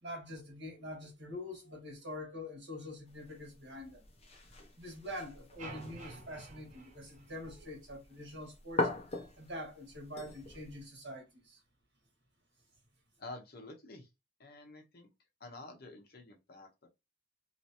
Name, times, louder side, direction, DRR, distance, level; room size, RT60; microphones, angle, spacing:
voice 1, 0.0-4.1 4.8-11.6, left 1 dB, 65° right, 1.7 m, -45 dB
sound 1, 3.1-10.9, left 2 dB, 35° left, 0.7 m, -42 dB
sound 2, 5.6-7.9, right 2 dB, 40° right, 1.0 m, -50 dB
voice 2, 13.2-14.1 14.4-15.1 15.4-16.9, left 2 dB, 55° left, 1.0 m, -49 dB
3.1 x 3.1 x 2.9 m
head